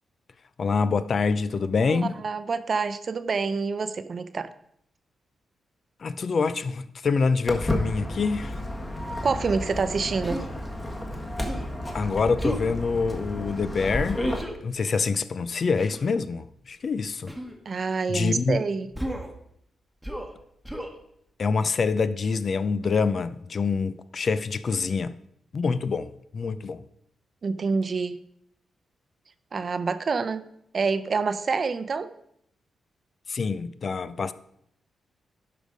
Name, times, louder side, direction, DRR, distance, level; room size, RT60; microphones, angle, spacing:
voice 1, 0.6-2.1 6.0-8.6 11.9-14.2 14.6-17.3 18.1-18.6 21.4-25.1 25.5-26.8 33.3-34.3, left 4 dB, 45° left, 0.4 m, -26 dB
voice 2, 1.9-4.5 9.2-10.4 17.7-18.9 27.4-28.2 29.5-30.5 30.7-32.1, right 4 dB, 45° right, 0.6 m, -27 dB
Walk footsteps, 7.5-14.4, left 1 dB, 20° left, 1.6 m, -32 dB
Human voice, 10.2-10.5 11.4-11.8 12.4-12.7 14.3-14.6 15.8-16.1 17.3-17.6 18.9-19.3 20.0-20.3 20.6-20.9, right 1 dB, ahead, 1.3 m, -33 dB
11.5 x 5.1 x 5.1 m
cardioid pair, 105°, 0 cm